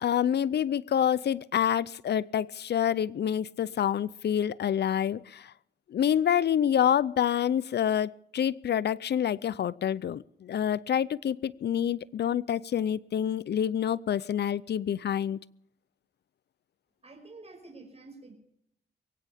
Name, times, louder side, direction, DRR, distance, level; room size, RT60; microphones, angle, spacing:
voice 1, 0.0-5.5 5.9-15.4, left 9 dB, 80° left, 20 dB, 0.5 m, -27 dB
voice 2, 17.0-18.3, right 3 dB, 35° right, 2 dB, 5.7 m, -48 dB
23.0 x 16.5 x 3.5 m, 0.72 s
cardioid pair, 75°, 17 cm